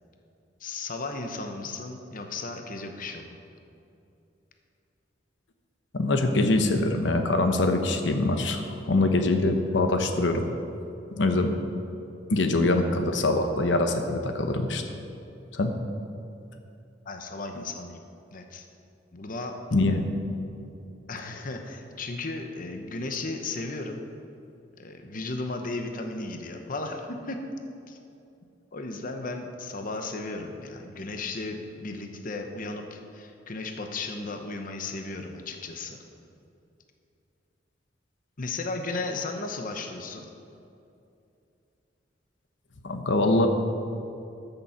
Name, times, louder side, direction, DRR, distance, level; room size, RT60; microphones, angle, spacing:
voice 1, 0.6-3.4 17.0-18.0 18.3-18.6 19.1-19.6 21.1-24.0 24.7-27.4 27.9-28.0 28.7-36.0 38.4-40.3, left 3 dB, 50° left, 5 dB, 0.9 m, -35 dB
voice 2, 5.9-10.5 11.2-11.5 12.3-14.8 15.5-15.7 19.7-20.0 42.8-43.5, left 2 dB, 75° left, 6 dB, 0.9 m, -24 dB
13.5 x 7.0 x 5.7 m, 2.7 s
head